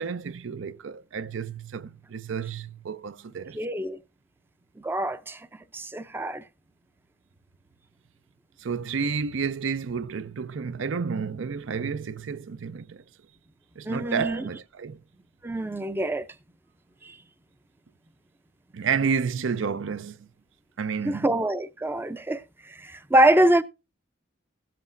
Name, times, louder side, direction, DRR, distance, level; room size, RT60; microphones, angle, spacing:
voice 1, 0.0-3.6 8.6-13.0 13.8-15.0 18.7-20.2 20.8-21.3, right 6 dB, 75° right, 0.5 m, -30 dB
voice 2, 3.5-4.0 4.8-5.4 5.7-6.4 13.9-14.4 15.4-16.3 17.0-17.1 21.0-23.6, right 1 dB, 10° right, 0.5 m, -24 dB
16.5 x 7.6 x 2.5 m
head